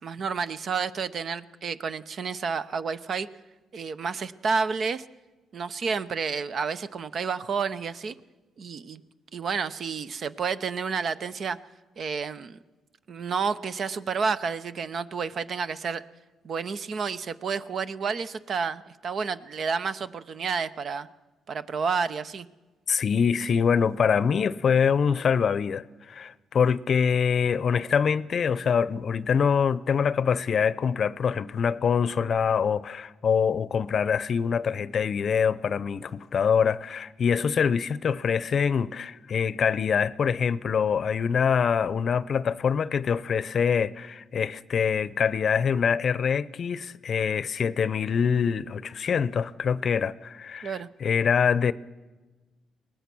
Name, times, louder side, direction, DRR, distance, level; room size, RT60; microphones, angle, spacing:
voice 1, 0.0-3.3 3.7-5.1 5.5-8.1 8.6-9.0 9.3-11.6 12.0-12.6 13.1-16.0 16.4-21.1 21.5-22.5 50.6-50.9, right 5 dB, 55° right, 0.8 m, -30 dB
voice 2, 22.9-51.7, left 6 dB, 50° left, 0.6 m, -24 dB
23.0 x 18.5 x 6.2 m
cardioid pair, 90°, 0 cm